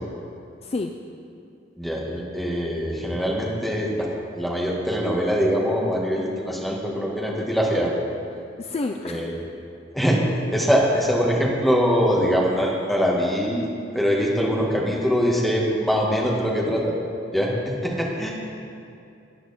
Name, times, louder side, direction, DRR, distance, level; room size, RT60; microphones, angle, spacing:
voice 1, 0.6-0.9 8.6-9.4, left 3 dB, 35° left, 4 dB, 0.4 m, -29 dB
voice 2, 1.8-4.1 4.4-7.9 9.0-9.3 9.9-10.2 10.5-13.7 13.9-17.0 17.3-18.3, equal, ahead, -3 dB, 1.6 m, -23 dB
13.5 x 9.3 x 4.2 m, 2.6 s
head